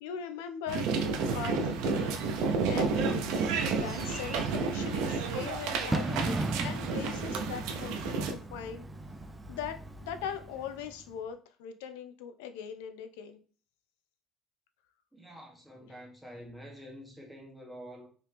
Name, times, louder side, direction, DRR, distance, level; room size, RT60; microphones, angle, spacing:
voice 1, 0.0-2.2 2.7-3.3 3.7-8.9 9.5-13.4 15.8-16.0, left 8 dB, 85° left, 0.4 m, -40 dB
sound 1, 0.7-8.3, right 4 dB, 75° right, 0.5 m, -31 dB
Bird / Fireworks, 1.9-11.1, right 2 dB, 20° right, 0.4 m, -38 dB
voice 2, 15.1-18.1, equal, ahead, 1.0 m, -47 dB
3.0 x 2.9 x 3.2 m
supercardioid pair, 75°, 0 cm